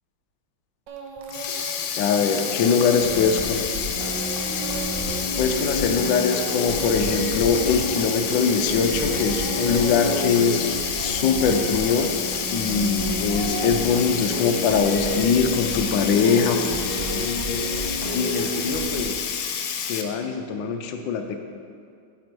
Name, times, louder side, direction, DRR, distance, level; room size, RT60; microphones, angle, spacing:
Speech / Crying sobbing, 0.9-1.9 2.2-8.8 9.1-10.5 10.8-17.0, right 5 dB, 65° right, 1.2 m, -39 dB
Sink (filling or washing), 1.2-20.0, left 7 dB, 90° left, 1.6 m, -29 dB
voice 1, 2.0-3.8 5.4-12.1 12.5-17.7 18.1-19.3 19.8-21.4, left 6 dB, 70° left, 5 dB, 1.2 m, -23 dB
sound 1, 3.0-19.0, equal, 30° right, 1.1 m, -30 dB
7.4 x 6.1 x 4.5 m, 2.3 s
omnidirectional pair, 2.4 m